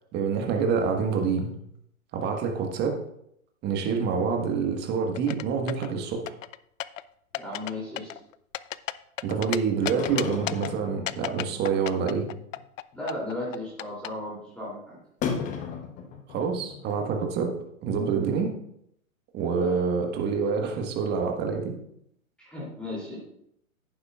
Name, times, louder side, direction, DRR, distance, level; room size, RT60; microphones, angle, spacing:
voice 1, 0.1-1.5 2.1-3.0 3.6-6.3 9.2-12.3 16.3-17.5 17.8-18.5 19.3-21.8, right 5 dB, 25° right, 3 dB, 1.5 m, -27 dB
sound 1, 5.2-5.9 6.3-7.0 7.3-7.7 8.0-9.6 9.9-10.7 11.1-12.8 13.1-14.1, left 13 dB, 65° left, 0.5 m, -32 dB
voice 2, 7.3-8.1 12.9-15.0 19.6-19.8 22.4-23.2, left 1 dB, ahead, -7 dB, 2.8 m, -35 dB
sound 2, 9.8-11.8 12.2-12.3 12.6-12.7 12.9-13.2 13.6-13.7 15.2-17.1 17.3-17.4 17.9-18.0 18.3-18.4, left 6 dB, 20° left, 0.8 m, -35 dB
11.0 x 9.6 x 2.4 m, 0.74 s
hypercardioid pair, 120°, 42 cm